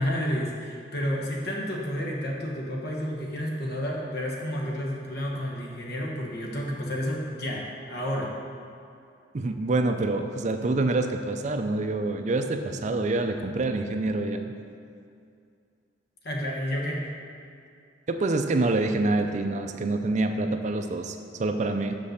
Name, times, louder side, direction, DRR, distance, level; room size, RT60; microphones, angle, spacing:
voice 1, 0.0-8.3 16.2-17.0, equal, 65° left, -1 dB, 1.3 m, -30 dB
voice 2, 9.3-14.5 18.1-21.9, right 2 dB, 40° right, 6 dB, 0.5 m, -26 dB
6.1 x 5.4 x 6.5 m, 2.4 s
head